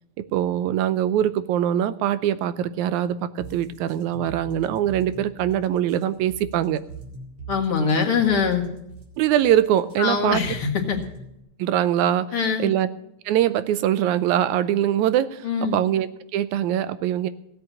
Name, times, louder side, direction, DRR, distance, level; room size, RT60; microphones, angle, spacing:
voice 1, 0.3-6.8 9.2-10.4 11.6-12.3 12.6-12.9 13.3-17.3, right 11 dB, 85° right, 14 dB, 2.1 m, -23 dB
sound 1, 3.4-11.4, right 4 dB, 55° right, 3.2 m, -41 dB
voice 2, 7.5-8.7 10.0-11.0 12.3-12.7 15.4-15.8, left 6 dB, 50° left, 1 dB, 2.5 m, -23 dB
16.0 x 8.4 x 7.2 m, 0.79 s
omnidirectional pair, 3.3 m